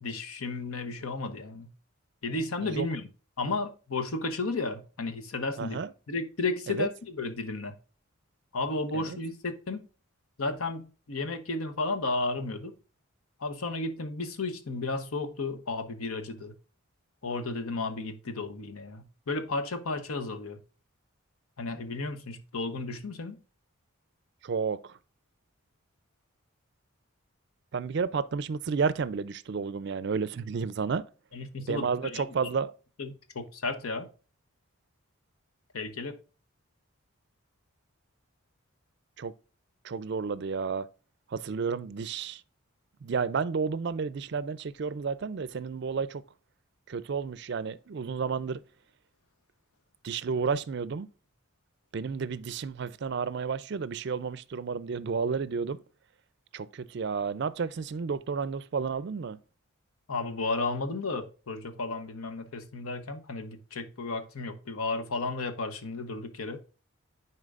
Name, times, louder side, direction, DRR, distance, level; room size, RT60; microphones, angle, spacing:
voice 1, 0.0-1.7 2.2-3.1 3.4-5.8 6.1-7.7 8.5-9.9 10.4-12.7 13.4-16.5 17.2-20.6 21.6-23.4 31.3-32.4 33.0-34.1 35.7-36.1 60.1-66.6, left 3 dB, 85° left, 0.9 m, -33 dB
voice 2, 5.6-5.9 6.7-6.9 8.9-9.2 24.4-24.9 27.7-31.0 31.7-32.7 39.2-39.3 39.8-40.9 41.3-42.4 43.0-46.2 46.9-48.6 50.0-51.1 51.9-55.8 56.5-59.4, right 5 dB, 50° right, 0.4 m, -31 dB
9.8 x 4.4 x 2.4 m
head